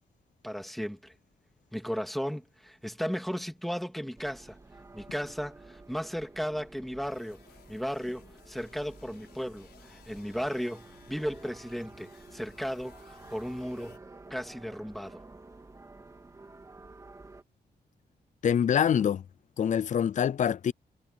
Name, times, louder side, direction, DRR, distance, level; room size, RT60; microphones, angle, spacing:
voice 1, 0.4-1.1 1.7-4.6 4.9-7.4 7.7-14.0 14.3-15.2, equal, ahead, 2.1 m, -35 dB
sound 1, 4.2-17.4, right 3 dB, 20° right, 2.2 m, -51 dB
sound 2, 7.0-14.0, left 8 dB, 75° left, 5.1 m, -58 dB
voice 2, 18.4-19.2 19.6-20.7, left 8 dB, 50° left, 0.4 m, -25 dB
wide cardioid pair, 165°, 17 cm